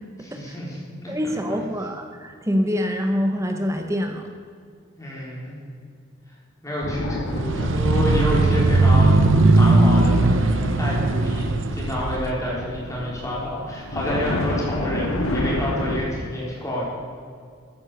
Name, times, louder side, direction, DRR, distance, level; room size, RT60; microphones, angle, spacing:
voice 1, 0.2-1.1 5.0-5.6 6.6-16.9, equal, 15° left, -5 dB, 3.7 m, -29 dB
voice 2, 1.1-4.3, equal, 15° right, 4 dB, 0.8 m, -25 dB
sound 1, 6.8-16.0, left 1 dB, 75° left, 1.6 m, -30 dB
sound 2, 7.3-12.3, right 2 dB, 60° right, 0.7 m, -18 dB
13.5 x 9.8 x 6.7 m, 2.2 s
head